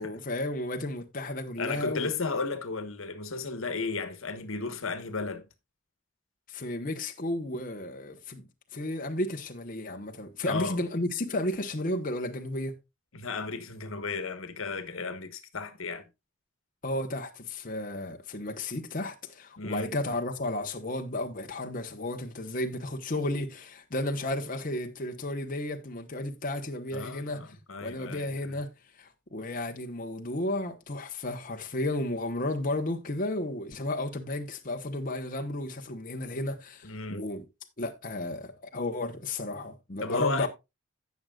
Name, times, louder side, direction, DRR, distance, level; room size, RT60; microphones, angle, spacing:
voice 1, 0.0-2.1 6.5-8.4 8.7-12.7 16.8-27.5 27.8-28.7 28.9-37.4 37.8-40.5, left 1 dB, 40° left, 1.1 m, -33 dB
voice 2, 1.6-5.5 10.4-10.8 13.1-16.1 19.6-19.9 26.9-28.3 36.8-37.3 40.0-40.5, left 4 dB, 85° left, 1.3 m, -34 dB
16.5 x 6.4 x 2.4 m
head